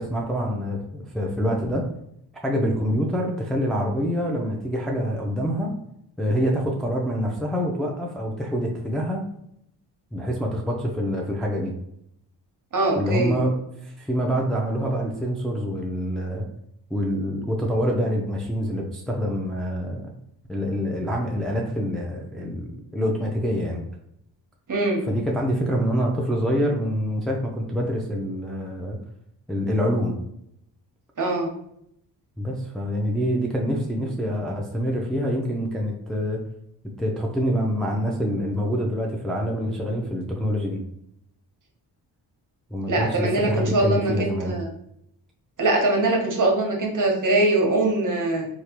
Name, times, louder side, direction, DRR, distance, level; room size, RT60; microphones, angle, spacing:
voice 1, 0.0-1.8 2.4-5.7 6.2-9.2 10.1-11.7 13.0-16.5 16.9-20.1 20.5-23.8 25.0-29.0 29.5-30.2 32.4-36.4 37.0-40.8 42.7-44.6, equal, ahead, -1 dB, 0.5 m, -26 dB
voice 2, 12.7-13.4 24.7-25.1 31.2-31.5 42.9-44.7 45.6-48.5, right 2 dB, 40° right, 0 dB, 1.0 m, -22 dB
3.2 x 2.4 x 2.9 m, 0.74 s
cardioid pair, 55°, 47 cm